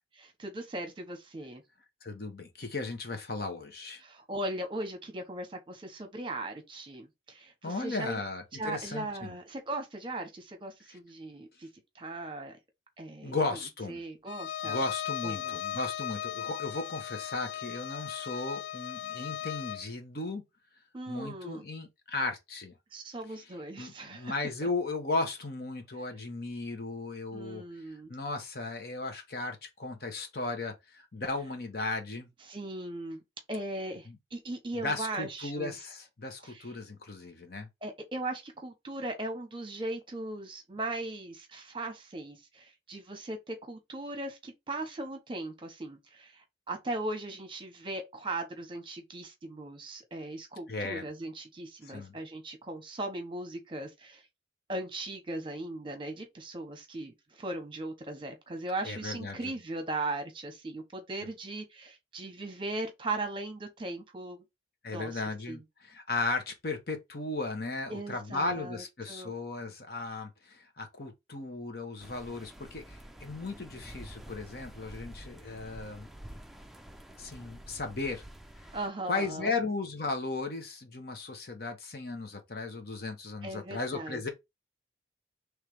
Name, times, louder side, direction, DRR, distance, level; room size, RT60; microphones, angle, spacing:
voice 1, 0.2-1.6 4.0-8.2 8.5-11.7 11.9-12.5 13.0-13.4 13.9-14.8 15.2-15.6 20.9-21.6 22.9-24.3 27.3-28.1 32.5-33.2 33.5-35.8 36.4-36.7 37.8-54.2 54.7-64.4 64.9-65.2 65.5-65.6 67.9-69.3 78.7-79.5 83.4-84.3, right 2 dB, 25° right, 1.0 m, -38 dB
voice 2, 2.0-4.0 7.6-9.3 13.2-14.0 14.6-20.4 21.1-22.7 23.8-27.6 28.1-32.3 34.1-34.2 34.8-37.7 50.7-51.1 51.8-52.1 58.8-59.5 64.8-76.1 77.2-78.2 79.1-84.3, left 3 dB, 55° left, 1.0 m, -36 dB
Bowed string instrument, 14.3-19.9, left 10 dB, 75° left, 0.3 m, -37 dB
sound 1, 72.0-78.9, right 1 dB, ahead, 0.4 m, -49 dB
3.2 x 3.2 x 4.8 m
head